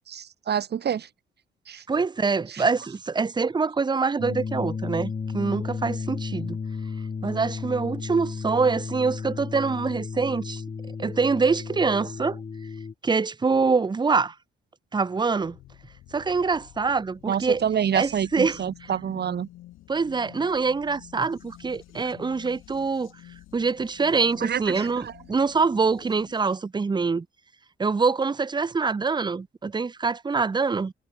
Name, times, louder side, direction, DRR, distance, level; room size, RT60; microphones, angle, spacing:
voice 1, 0.1-1.1 1.7-1.8 2.5-2.6 17.3-19.5 22.0-22.1 24.4-25.1, right 8 dB, 55° right, 4.5 m, -27 dB
voice 2, 1.9-6.6 7.2-10.6 11.0-12.4 13.0-14.3 14.9-15.6 16.1-17.6 17.9-18.6 19.9-23.1 23.5-27.3 27.8-30.9, right 4 dB, 20° right, 0.8 m, -25 dB
sound 1, 4.2-12.9, left 5 dB, 35° left, 7.8 m, -33 dB
sound 2, 15.4-26.6, left 15 dB, 90° left, 6.9 m, -50 dB
cardioid pair, 90°, 20 cm